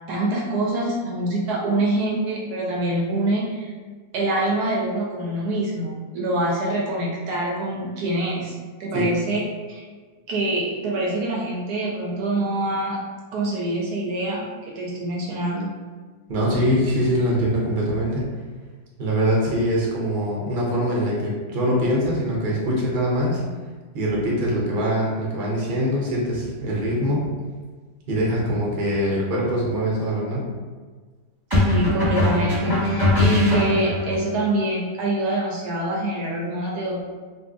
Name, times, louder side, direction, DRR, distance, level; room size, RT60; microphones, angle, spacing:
voice 1, 0.1-3.7 4.1-8.5 8.8-9.4 9.7-9.8 10.3-13.0 13.3-15.7 31.6-37.0, right 1 dB, 70° right, -2 dB, 1.1 m, -25 dB
voice 2, 16.3-18.4 19.0-23.4 23.9-27.3 28.1-30.5, equal, 45° right, -4 dB, 0.7 m, -23 dB
sound 1, 28.8-29.1 31.5-34.2, left 2 dB, 15° right, 1.1 m, -21 dB
2.7 x 2.5 x 3.6 m, 1.4 s
omnidirectional pair, 1.8 m